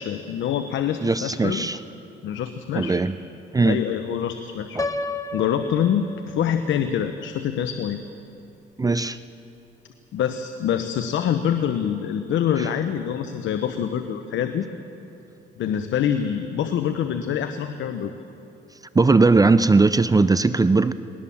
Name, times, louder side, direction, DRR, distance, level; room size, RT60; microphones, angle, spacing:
voice 1, 0.0-1.7 2.2-3.0 3.6-4.8 5.3-8.0 10.1-14.7 15.6-18.1, left 9 dB, 75° left, 8 dB, 0.9 m, -25 dB
voice 2, 1.0-1.8 2.7-3.1 3.5-3.8 4.8-4.9 8.8-9.2 18.9-20.9, right 3 dB, 20° right, 14 dB, 0.5 m, -18 dB
Piano, 4.8-6.7, left 2 dB, 15° left, 1.0 m, -31 dB
19.5 x 18.5 x 7.2 m, 2.8 s
cardioid pair, 90°, 20 cm